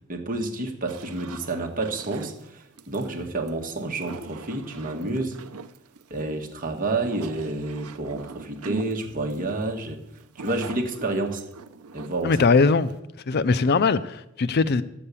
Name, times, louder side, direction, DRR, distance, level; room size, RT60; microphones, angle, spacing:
voice 1, 0.1-5.4 6.1-10.0 10.3-11.5 11.9-12.4, right 2 dB, 40° right, 1.6 m, -29 dB
sound 1, 0.9-13.0, right 5 dB, 90° right, 0.7 m, -42 dB
voice 2, 12.2-12.9 13.3-14.8, left 4 dB, 50° left, 0.5 m, -20 dB
11.0 x 7.2 x 8.3 m
head